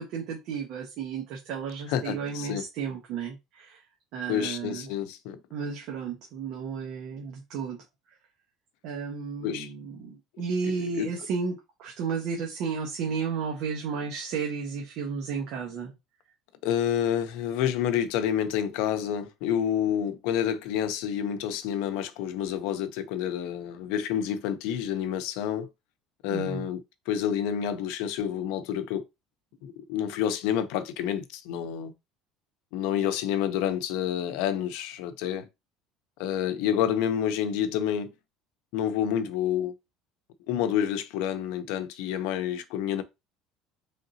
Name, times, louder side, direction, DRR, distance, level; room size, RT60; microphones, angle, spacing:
voice 1, 0.0-3.8 4.1-4.9 5.5-7.8 8.8-15.9 26.3-26.7, right 5 dB, 60° right, 1.0 m, -33 dB
voice 2, 1.9-2.7 4.3-5.4 9.4-9.7 10.6-11.1 16.6-25.7 26.2-29.0 29.6-31.9 32.7-35.5 36.2-38.1 38.7-39.8 40.5-43.0, left 9 dB, 80° left, 0.6 m, -29 dB
3.8 x 3.5 x 2.7 m
cardioid pair, 150°, 0 cm